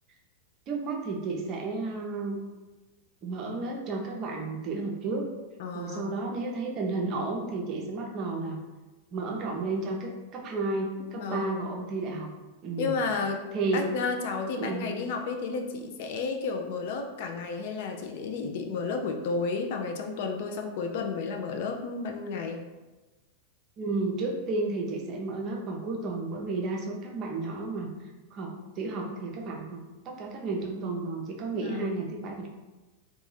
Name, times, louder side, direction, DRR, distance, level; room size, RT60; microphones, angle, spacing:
voice 1, 0.7-2.4 3.2-5.3 5.7-8.6 9.1-12.3 12.6-13.0 13.5-13.9 14.6-15.0 23.8-27.9 28.3-29.8 30.0-32.5, right 3 dB, 35° right, 0 dB, 0.5 m, -32 dB
voice 2, 5.6-6.2 11.1-11.7 12.8-13.5 13.7-22.7 31.5-32.0, left 4 dB, 50° left, 4 dB, 0.3 m, -32 dB
2.6 x 2.2 x 3.2 m, 1.2 s
figure-of-eight pair, 90°, 0 cm